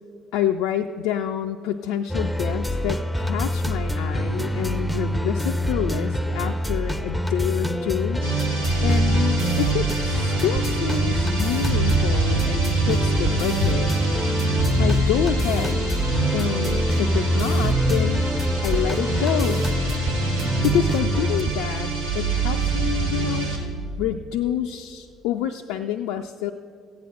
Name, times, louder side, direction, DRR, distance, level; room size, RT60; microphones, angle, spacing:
voice 1, 0.3-8.2 8.8-13.9 14.8-15.8 16.3-18.3 18.6-19.6 20.6-23.5 24.0-26.5, left 10 dB, 65° left, 4 dB, 0.3 m, -27 dB
sound 1, 2.1-21.4, equal, ahead, 0.6 m, -26 dB
sound 2, 8.2-23.6, right 3 dB, 80° right, 1.6 m, -24 dB
sound 3, 10.5-10.9 11.9-12.2 13.2-13.7 14.6-14.9 16.0-16.2 17.4-17.6 18.7-19.1 20.0-20.4 21.4-21.7, right 10 dB, 55° right, 0.4 m, -33 dB
15.0 x 8.7 x 4.3 m, 2.3 s
figure-of-eight pair, 50°, 0 cm